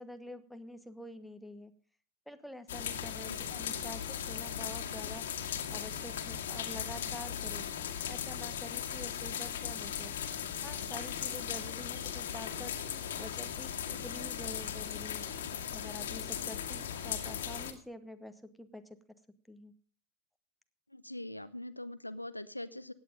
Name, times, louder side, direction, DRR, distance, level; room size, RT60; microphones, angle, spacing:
voice 1, 0.0-1.7 2.3-5.3 5.7-7.6 8.1-10.1 10.6-12.7 13.2-15.3 15.7-18.8 19.5-19.7, left 1 dB, ahead, 9 dB, 1.2 m, -47 dB
sound 1, 2.7-17.7, left 8 dB, 60° left, 1.9 m, -38 dB
voice 2, 20.9-22.9, left 1 dB, 85° left, 14 dB, 0.7 m, -42 dB
16.5 x 9.6 x 5.2 m, 0.39 s
figure-of-eight pair, 90°, 0 cm